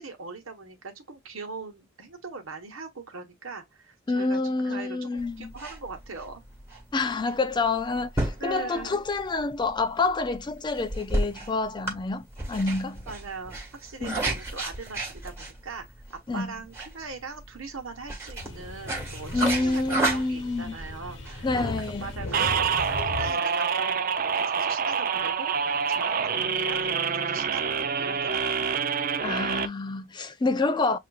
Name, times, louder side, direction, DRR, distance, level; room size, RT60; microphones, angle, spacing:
voice 1, 0.0-6.4 8.4-9.0 13.1-13.5 13.8-28.9, right 4 dB, 75° right, 1.2 m, -40 dB
voice 2, 4.1-5.5 6.9-13.0 14.0-14.2 16.3-16.5 19.3-20.8 21.4-22.4 29.2-31.0, left 3 dB, 20° left, 0.3 m, -28 dB
sound 1, 5.2-23.0, right 2 dB, 10° right, 1.5 m, -34 dB
sound 2, 18.4-23.3, left 2 dB, 60° left, 1.0 m, -37 dB
sound 3, 22.3-29.7, right 6 dB, 40° right, 0.4 m, -27 dB
7.4 x 2.5 x 2.3 m
head